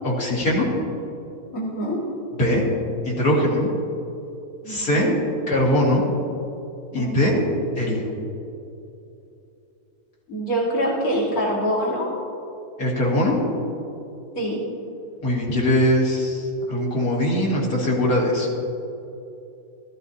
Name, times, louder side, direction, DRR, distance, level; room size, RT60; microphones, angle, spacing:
voice 1, 0.0-0.7 2.4-2.6 3.0-3.7 4.7-5.1 5.5-6.0 6.9-7.3 7.8-8.1 12.8-13.4 15.2-18.5, left 1 dB, 85° left, -4 dB, 2.7 m, -21 dB
voice 2, 1.5-2.0 4.6-5.2 6.9-7.5 10.3-12.1 14.4-14.7, equal, 70° left, -5 dB, 2.4 m, -25 dB
14.5 x 13.5 x 2.8 m, 2.8 s
omnidirectional pair, 1.6 m